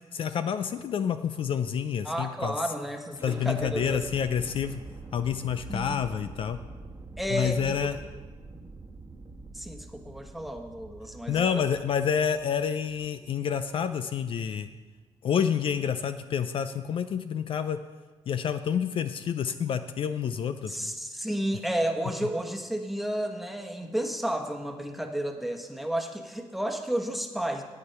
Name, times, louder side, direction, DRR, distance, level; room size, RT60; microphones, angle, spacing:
voice 1, 0.1-2.5 3.2-4.8 5.1-6.6 7.3-8.0 11.3-14.7 15.2-17.8 18.3-20.9, left 7 dB, 55° left, 10 dB, 0.5 m, -28 dB
voice 2, 2.0-4.1 4.4-4.6 5.7-6.0 7.2-7.8 9.5-11.7 20.7-27.6, right 1 dB, ahead, 3 dB, 1.2 m, -32 dB
sound 1, 3.1-15.0, right 2 dB, 25° right, 1.2 m, -46 dB
9.8 x 8.8 x 5.6 m, 1.3 s
cardioid pair, 90°, 11 cm